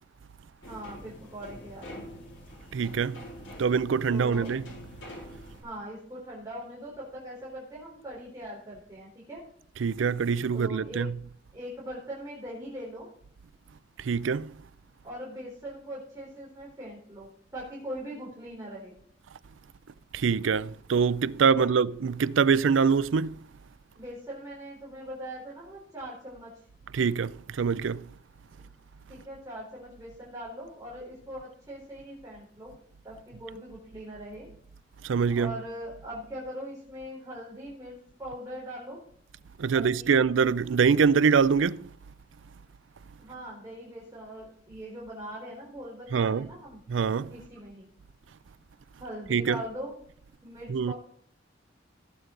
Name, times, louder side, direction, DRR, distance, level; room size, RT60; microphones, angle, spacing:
sound 1, 0.6-5.6, equal, 75° left, 4.1 m, -45 dB
voice 1, 0.7-2.0 4.1-4.6 5.6-9.4 10.5-11.1 11.5-13.1 15.0-18.9 21.5-21.7 24.0-26.6 28.5-28.7 29.1-32.7 33.0-34.5 35.2-39.0 39.7-40.2 43.2-46.8 47.3-47.9 49.0-50.0 50.4-50.9, equal, 20° right, 3.9 m, -41 dB
voice 2, 2.7-3.2 3.6-4.6 9.8-11.1 14.0-14.5 20.1-23.4 26.9-28.1 35.0-35.5 39.6-41.9 46.1-46.5 46.9-47.3 49.3-49.6 50.7-50.9, right 6 dB, 90° right, 0.4 m, -24 dB
17.0 x 8.2 x 3.8 m
head